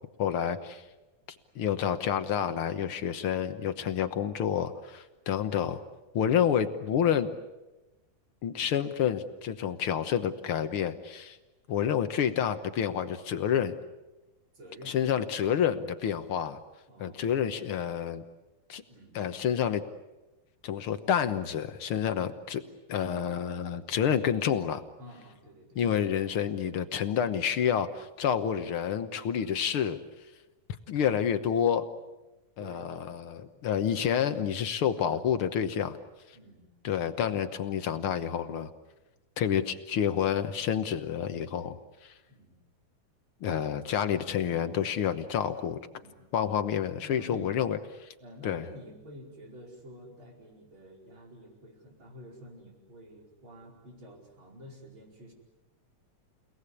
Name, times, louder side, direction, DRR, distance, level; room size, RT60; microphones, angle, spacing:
voice 1, 0.2-0.8 1.5-5.8 6.1-7.3 8.4-11.4 11.7-13.8 14.9-16.6 17.0-18.2 18.7-18.8 19.1-19.8 20.6-22.6 22.9-24.8 25.7-30.0 30.9-31.9 32.6-36.0 36.8-38.7 39.4-42.1 43.4-45.8 46.3-48.1 48.4-48.6, left 8 dB, 60° left, 10 dB, 1.5 m, -29 dB
voice 2, 14.5-15.4 16.9-17.3 18.9-19.2 25.0-25.9 32.6-33.9 36.3-36.7 42.3-42.6 45.9-46.5 47.0-47.6 48.2-55.3, equal, 40° right, 1 dB, 5.6 m, -50 dB
30.0 x 18.5 x 9.9 m, 1.1 s
omnidirectional pair, 3.6 m